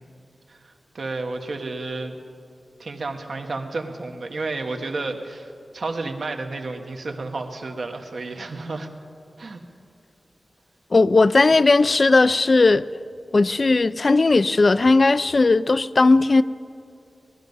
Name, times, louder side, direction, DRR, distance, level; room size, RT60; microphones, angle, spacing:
voice 1, 0.5-2.2 2.8-8.9 9.4-9.6, right 3 dB, 65° right, 1.1 m, -31 dB
voice 2, 10.9-12.9 13.3-16.4, left 3 dB, 45° left, 0.3 m, -17 dB
18.5 x 12.0 x 5.4 m
wide cardioid pair, 105°, 0 cm